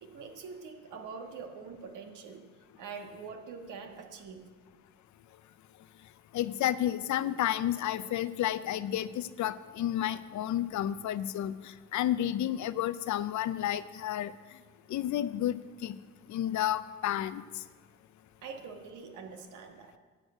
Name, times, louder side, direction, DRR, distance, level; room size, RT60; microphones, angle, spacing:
voice 1, 0.0-2.5 2.8-4.6 18.4-19.9, right 5 dB, 85° right, 4 dB, 1.5 m, -44 dB
voice 2, 6.3-14.3 14.9-16.0 16.3-17.4, left 12 dB, 70° left, 15 dB, 0.6 m, -31 dB
10.5 x 6.5 x 8.8 m, 1.4 s
cardioid pair, 90°, 30 cm